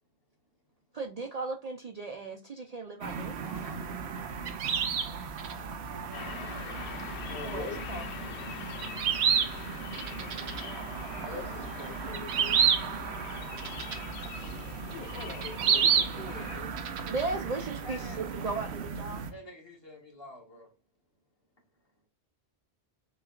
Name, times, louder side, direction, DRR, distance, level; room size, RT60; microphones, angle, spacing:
voice 1, 0.9-3.4 7.4-8.0 17.1-19.2, right 3 dB, 50° right, 3 dB, 0.5 m, -36 dB
sound 1, 3.0-19.3, right 7 dB, 85° right, 0.9 m, -32 dB
voice 2, 3.4-3.8 5.5-6.8 11.2-11.6 16.7-16.9 17.4-17.5 17.8-18.3 19.3-20.7, left 1 dB, 25° left, -2 dB, 1.5 m, -50 dB
sound 2, 6.1-16.6, left 6 dB, 90° left, 0.9 m, -43 dB
voice 3, 7.3-7.8 11.3-12.6 14.9-16.7, left 4 dB, 65° left, 2 dB, 1.2 m, -43 dB
6.2 x 2.3 x 2.3 m, 0.31 s
omnidirectional pair, 1.1 m